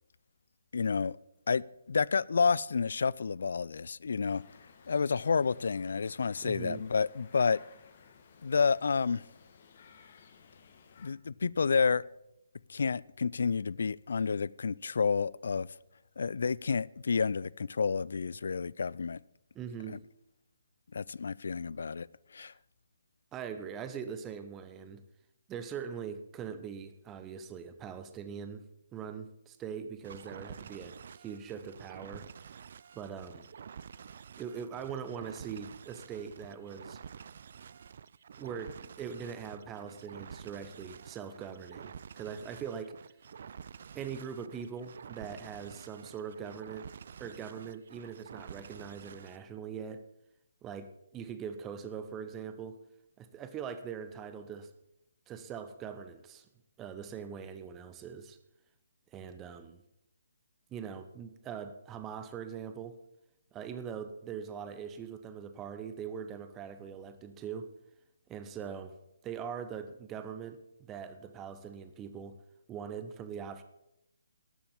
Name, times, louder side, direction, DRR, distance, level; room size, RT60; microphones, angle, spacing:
voice 1, 0.7-1.2 1.5-4.4 4.9-7.6 8.4-9.2 11.0-12.0 12.7-15.7 16.2-19.2 19.9-20.0 20.9-22.1 22.3-22.5, left 5 dB, 60° left, 0.3 m, -30 dB
sound 1, 4.3-11.1, left 6 dB, 45° left, 1.4 m, -57 dB
voice 2, 6.4-6.8 19.5-20.0 23.3-25.0 25.5-28.6 28.9-32.3 32.9-33.5 34.4-37.0 38.4-43.0 43.9-46.9 47.2-50.1 50.6-52.8 53.2-54.7 55.3-56.5 56.8-58.4 59.1-59.8 60.7-63.0 63.5-67.7 68.3-69.0 69.2-72.4 72.7-73.6, right 7 dB, 15° right, 0.9 m, -42 dB
sound 2, 30.0-49.4, right 7 dB, 50° right, 0.3 m, -49 dB
12.0 x 7.0 x 7.3 m
figure-of-eight pair, 140°, 0 cm